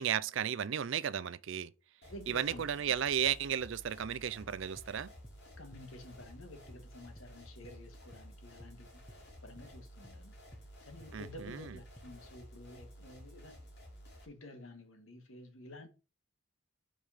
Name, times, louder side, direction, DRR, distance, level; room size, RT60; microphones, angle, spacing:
voice 1, 0.0-1.7 2.3-5.1 11.1-11.7, right 8 dB, 60° right, 0.4 m, -34 dB
sound 1, 2.0-14.3, equal, 50° left, 2.9 m, -53 dB
voice 2, 2.1-2.7 5.6-10.3 10.8-13.6 14.2-15.9, left 1 dB, 75° left, 1.6 m, -51 dB
sound 2, 4.7-4.9 5.2-5.4 5.7-5.9 6.2-6.4 6.7-6.8 7.2-7.3 7.6-7.8 8.1-8.3 8.6-8.8 9.1-9.2 9.5-9.7 10.0-10.2 10.5-10.7 11.0-11.2 11.5-11.6 12.0-12.1, equal, 15° left, 1.0 m, -56 dB
5.3 x 4.9 x 5.7 m
head